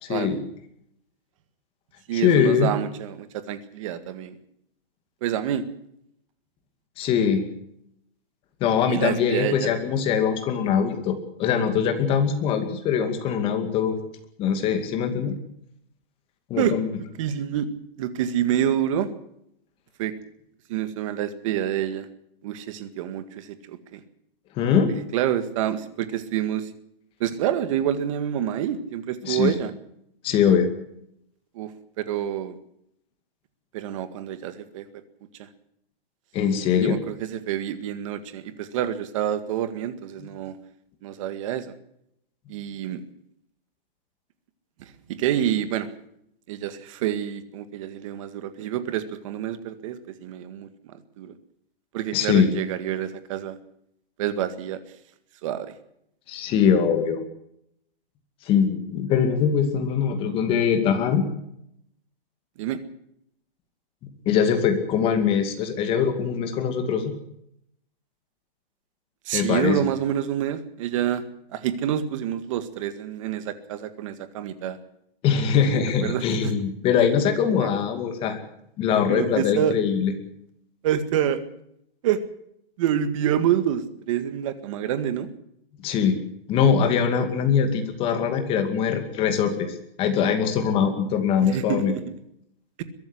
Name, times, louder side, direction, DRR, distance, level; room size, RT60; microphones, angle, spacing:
voice 1, 0.0-0.4 2.1-2.7 7.0-7.5 8.6-14.0 14.4-15.3 16.5-16.9 24.6-24.9 29.2-29.5 30.2-30.7 36.3-37.0 40.2-40.3 52.1-52.5 56.3-57.2 58.4-61.2 64.3-67.1 69.3-69.8 75.2-78.4 78.8-80.1 85.8-86.2 86.5-91.9, left 7 dB, 20° left, 7 dB, 2.4 m, -22 dB
voice 2, 2.1-4.4 5.2-5.6 8.9-9.7 16.6-16.7 17.2-17.7 18.0-19.1 20.0-20.1 20.7-22.1 22.4-24.0 24.9-26.7 27.2-29.7 31.6-31.7 32.0-32.6 33.7-34.9 35.4-35.5 36.8-40.6 41.0-41.7 42.5-43.0 44.8-45.9 46.5-51.3 51.9-53.6 54.2-54.8 55.4-55.7 62.6-62.8 69.3-71.2 71.5-74.8 76.0-76.5 77.6-77.7 79.1-79.8 80.8-81.4 82.0-82.2 82.8-85.3 91.4-92.0, right 10 dB, 35° right, 11 dB, 1.8 m, -27 dB
23.0 x 13.0 x 10.0 m, 0.75 s
hypercardioid pair, 165°, 30 cm